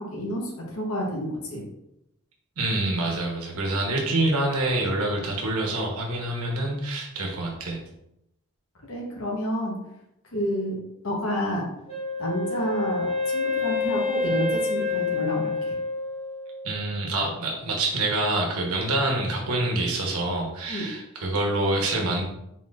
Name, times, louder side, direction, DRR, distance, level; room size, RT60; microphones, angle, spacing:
voice 1, 0.0-1.6 8.9-9.8 10.3-10.7 11.0-11.7 12.2-15.7 20.7-20.9, equal, 65° left, -2 dB, 1.0 m, -29 dB
voice 2, 2.6-7.8 16.6-22.2, right 2 dB, 75° right, 0 dB, 1.0 m, -26 dB
Wind instrument woodwind instrument, 11.9-16.7, left 4 dB, 30° left, 1.3 m, -28 dB
4.3 x 4.1 x 2.4 m, 0.82 s
head